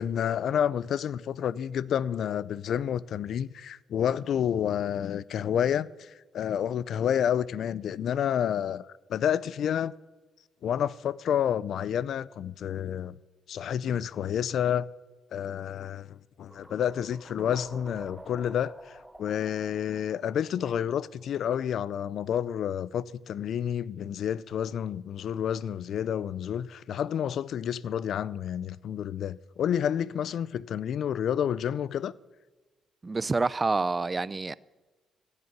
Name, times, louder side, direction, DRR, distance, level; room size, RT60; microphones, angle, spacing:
voice 1, 0.0-9.9 10.6-13.2 13.5-14.9 15.3-32.1, left 9 dB, 65° left, 0.4 m, -29 dB
sound 1, 16.5-21.4, right 1 dB, 10° right, 0.8 m, -49 dB
voice 2, 33.0-34.5, right 3 dB, 25° right, 0.4 m, -27 dB
15.0 x 6.6 x 9.7 m
cardioid pair, 90°, 0 cm